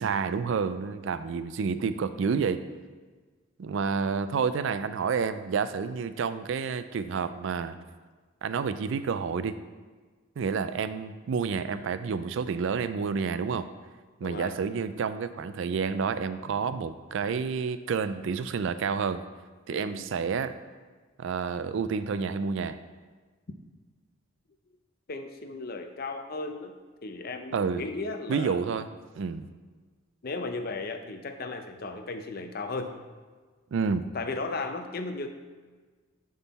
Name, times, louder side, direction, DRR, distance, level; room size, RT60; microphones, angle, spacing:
voice 1, 0.0-2.6 3.6-7.8 8.4-9.6 10.4-13.7 14.2-19.2 19.7-20.6 21.2-22.8 27.5-27.8 28.3-28.9 29.2-29.5 33.7-34.1, right 5 dB, 55° right, 12 dB, 0.3 m, -29 dB
voice 2, 14.2-14.5 19.7-20.0 25.1-26.8 27.0-28.6 30.2-32.9 34.1-35.3, left 3 dB, 45° left, 7 dB, 0.5 m, -35 dB
11.0 x 3.7 x 4.1 m, 1.4 s
head